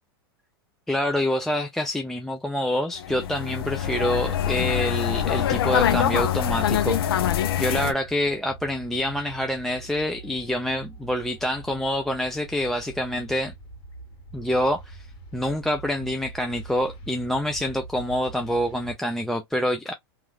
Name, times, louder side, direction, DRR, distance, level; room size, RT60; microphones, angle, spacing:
voice 1, 0.9-13.5 14.3-15.1 15.3-19.9, left 1 dB, 5° left, 0.4 m, -26 dB
sound 1, 3.0-7.9, left 10 dB, 75° left, 0.5 m, -24 dB
sound 2, 5.6-19.0, right 2 dB, 55° left, 1.5 m, -44 dB
3.0 x 2.3 x 2.2 m
hypercardioid pair, 115°, 13 cm